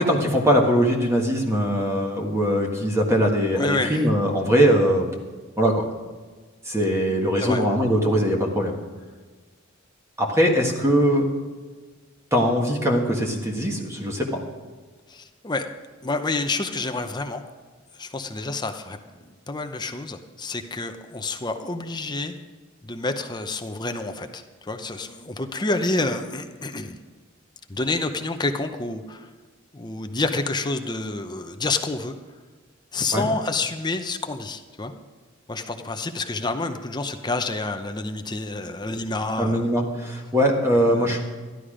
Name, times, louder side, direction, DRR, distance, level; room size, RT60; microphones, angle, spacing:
voice 1, 0.0-5.1 5.6-5.8 6.7-8.8 10.2-11.3 12.3-14.4 33.1-33.3 39.4-41.2, equal, 15° right, 0 dB, 1.6 m, -21 dB
voice 2, 3.6-4.1 7.4-7.6 15.1-15.7 16.0-17.4 18.0-19.0 19.5-22.3 22.8-27.0 27.7-29.3 29.7-32.2 32.9-34.9 35.5-39.7 40.7-41.2, left 2 dB, 20° left, 7 dB, 0.7 m, -28 dB
13.0 x 11.5 x 5.0 m, 1.4 s
head